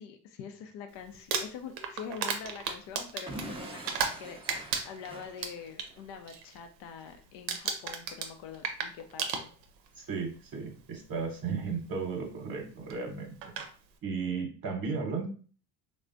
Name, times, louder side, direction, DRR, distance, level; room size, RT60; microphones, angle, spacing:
voice 1, 0.0-9.5, left 7 dB, 60° left, 6 dB, 0.6 m, -45 dB
Crumpling crinkling, 1.1-4.2 4.5-5.9 6.3-6.6 6.8-7.2 7.5-9.9 10.8-10.9 12.9-13.0 13.4-13.7, right 6 dB, 90° right, 0.6 m, -34 dB
Explosion / Shatter, 3.3-6.0, right 1 dB, 10° right, 0.4 m, -44 dB
voice 2, 10.0-13.4 14.0-15.3, right 5 dB, 40° right, 0 dB, 0.9 m, -34 dB
3.2 x 2.2 x 2.5 m, 0.39 s
hypercardioid pair, 65°, 49 cm